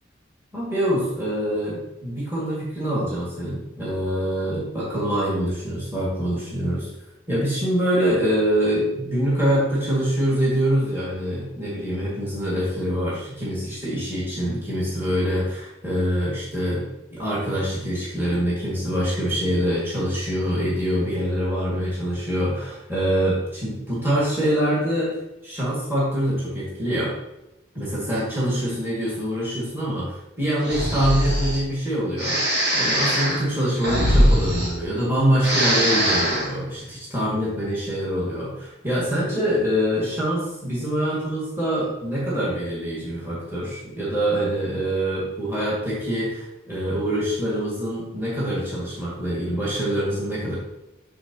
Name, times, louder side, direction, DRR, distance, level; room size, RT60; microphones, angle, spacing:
voice 1, 0.5-6.9 7.3-16.8 17.1-25.1 25.4-27.1 27.7-32.4 32.7-50.5, equal, 10° right, -8 dB, 1.9 m, -25 dB
Breathing, 30.6-31.6 32.2-35.1 35.4-36.5, equal, 55° right, 1.8 m, -21 dB
9.6 x 3.9 x 2.8 m, 0.92 s
head